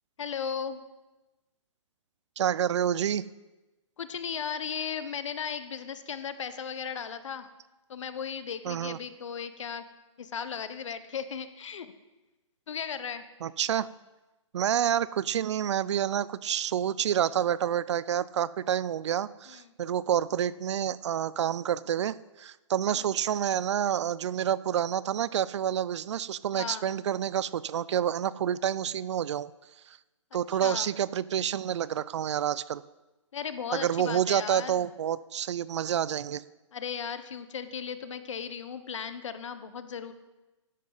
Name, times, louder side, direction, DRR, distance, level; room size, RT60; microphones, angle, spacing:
voice 1, 0.2-0.8 4.0-7.5 7.9-9.8 10.2-11.9 12.7-13.2 19.5-19.7 22.9-23.1 26.5-26.9 30.3-30.9 33.3-34.9 36.7-40.1, left 7 dB, 70° left, 12 dB, 1.0 m, -36 dB
voice 2, 2.4-3.2 8.6-9.0 13.4-13.9 14.5-29.5 29.9-30.0 30.3-32.8 33.7-36.4, right 9 dB, 65° right, 19 dB, 0.4 m, -28 dB
13.0 x 10.5 x 4.0 m, 1.1 s
hypercardioid pair, 140°, 16 cm